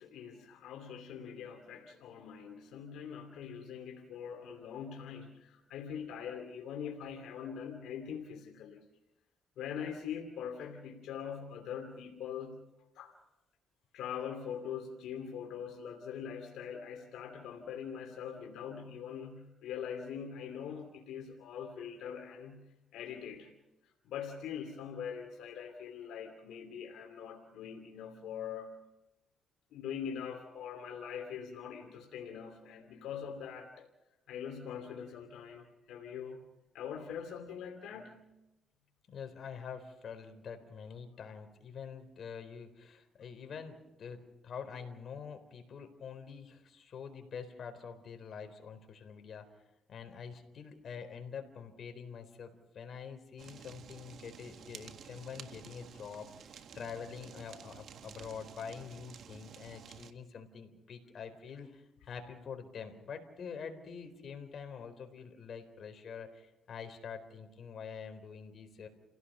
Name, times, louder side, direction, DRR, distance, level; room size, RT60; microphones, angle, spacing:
voice 1, 0.0-8.8 9.6-12.6 12.9-13.1 13.9-22.6 22.9-23.5 24.0-28.7 29.7-33.9 34.3-36.4 36.7-38.4, left 7 dB, 85° left, 3 dB, 2.7 m, -43 dB
voice 2, 39.1-49.4 49.9-68.9, left 6 dB, 55° left, 6 dB, 4.1 m, -46 dB
Fire, 53.4-60.1, right 7 dB, 65° right, 1.6 m, -52 dB
29.5 x 17.0 x 5.7 m, 0.94 s
cardioid pair, 90°, 0 cm